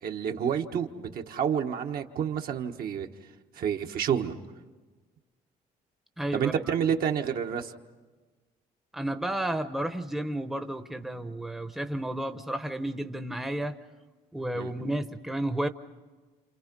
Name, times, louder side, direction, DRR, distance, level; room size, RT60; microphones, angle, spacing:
voice 1, 0.0-3.1 3.5-4.4 6.3-7.7 14.5-14.7, right 8 dB, 60° right, 3 dB, 1.4 m, -29 dB
voice 2, 6.2-6.8 8.9-13.8 14.3-15.7, right 1 dB, ahead, 7 dB, 0.9 m, -32 dB
29.5 x 27.5 x 5.4 m, 1.3 s
cardioid pair, 110°, 17 cm